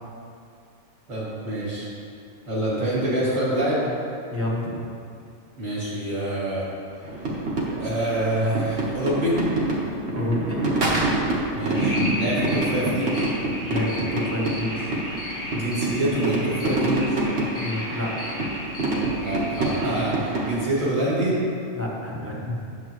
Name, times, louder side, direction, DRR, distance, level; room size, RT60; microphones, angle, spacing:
voice 1, 1.1-1.9 2.5-3.9 5.6-6.7 7.8-9.4 11.5-13.3 15.5-17.2 19.2-21.4, right 1 dB, 85° right, -8 dB, 2.8 m, -26 dB
voice 2, 4.3-4.9 10.1-10.6 13.7-14.9 17.6-18.2 21.7-22.7, left 1 dB, 10° right, -5 dB, 1.0 m, -29 dB
sound 1, 7.0-20.5, right 2 dB, 55° right, 1.4 m, -26 dB
sound 2, 11.7-20.1, left 1 dB, 40° left, 1.3 m, -35 dB
10.0 x 7.2 x 3.0 m, 2.4 s
omnidirectional pair, 1.4 m